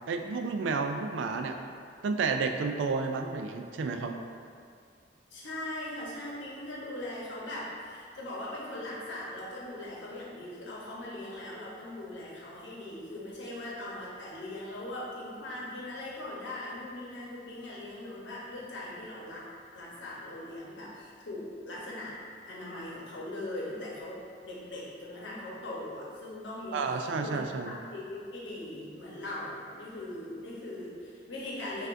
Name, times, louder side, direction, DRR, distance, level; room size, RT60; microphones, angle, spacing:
voice 1, 0.1-1.6 2.0-4.1 26.7-27.7, right 4 dB, 80° right, 5 dB, 0.3 m, -31 dB
voice 2, 5.3-19.5 19.7-22.2 22.5-31.9, left 1 dB, 80° left, -5 dB, 0.9 m, -40 dB
5.5 x 2.5 x 2.5 m, 2.3 s
head